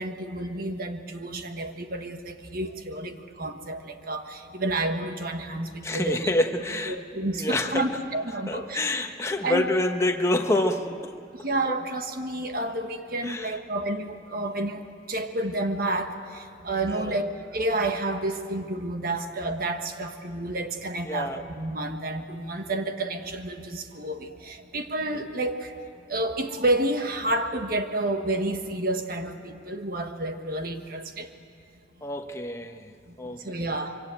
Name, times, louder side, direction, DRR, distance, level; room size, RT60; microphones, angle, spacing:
voice 1, 0.0-6.3 6.9-8.8 9.4-9.7 11.3-25.7 26.1-31.3 33.1-34.0, right 2 dB, 50° right, 6 dB, 1.4 m, -30 dB
voice 2, 5.8-7.0 7.3-7.9 8.5-11.1 11.6-11.8 13.2-13.6 16.9-17.2 21.0-21.4 25.1-25.2 32.0-32.9 33.2-33.6, left 1 dB, 15° left, 4 dB, 1.2 m, -27 dB
24.5 x 24.5 x 9.1 m, 2.4 s
head